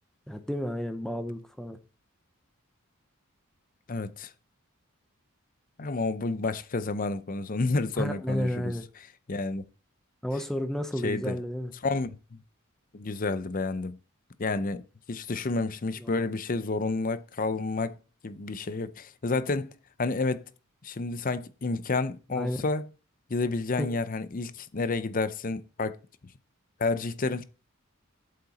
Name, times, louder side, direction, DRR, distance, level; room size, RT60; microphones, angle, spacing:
voice 1, 0.3-1.8 8.0-8.9 10.2-11.7 16.0-16.2 22.3-22.6 23.8-23.9, equal, ahead, 0.7 m, -31 dB
voice 2, 3.9-4.3 5.8-8.7 9.3-9.6 11.0-11.4 11.8-12.2 12.9-14.0 14.4-14.8 15.1-18.0 18.2-19.7 20.0-20.5 20.8-22.9 23.3-26.0 26.8-27.4, left 3 dB, 40° left, 0.6 m, -30 dB
8.5 x 7.7 x 4.2 m
head